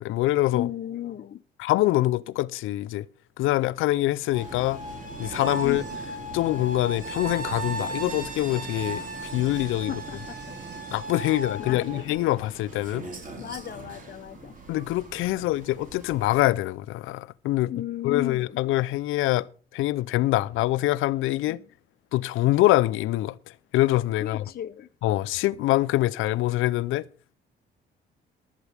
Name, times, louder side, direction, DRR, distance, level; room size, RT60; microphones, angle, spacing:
voice 1, 0.0-0.7 1.6-3.1 3.4-4.8 5.2-5.8 6.3-9.9 10.9-13.1 14.7-17.7 18.0-19.5 19.7-21.6 22.1-23.4 23.7-24.4 25.0-27.1, left 16 dB, 90° left, 0.5 m, -24 dB
voice 2, 0.5-1.4 5.6-6.0 9.9-10.5 11.3-12.1 13.4-14.6 17.7-18.6 21.5-21.7 24.2-24.9, left 11 dB, 50° left, 0.7 m, -35 dB
sound 1, 4.3-16.5, right 2 dB, 40° right, 4.4 m, -37 dB
15.5 x 12.0 x 3.5 m
cardioid pair, 90°, 20 cm